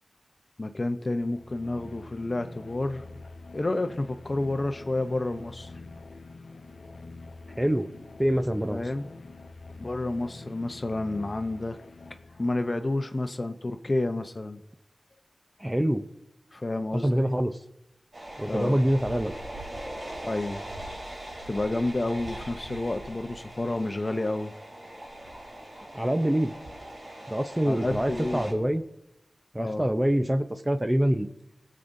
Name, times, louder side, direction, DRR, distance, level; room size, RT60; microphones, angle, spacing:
voice 1, 0.6-3.0 3.5-5.7 8.7-9.1 9.8-11.8 12.4-14.6 16.5-17.3 18.5-18.8 20.2-20.6 21.5-24.5 27.7-28.6 29.6-29.9, left 2 dB, 45° left, 8 dB, 0.7 m, -30 dB
sound 1, 1.1-12.8, left 3 dB, 80° left, 0.7 m, -46 dB
voice 2, 7.6-7.9 8.2-8.8 15.6-16.1 16.9-17.6 18.4-19.3 25.9-26.5 27.3-28.8 29.5-31.3, equal, 15° right, 8 dB, 0.7 m, -25 dB
sound 2, 18.1-28.5, right 1 dB, 60° right, 2.8 m, -41 dB
22.5 x 7.6 x 2.7 m, 0.88 s
cardioid pair, 45°, 0 cm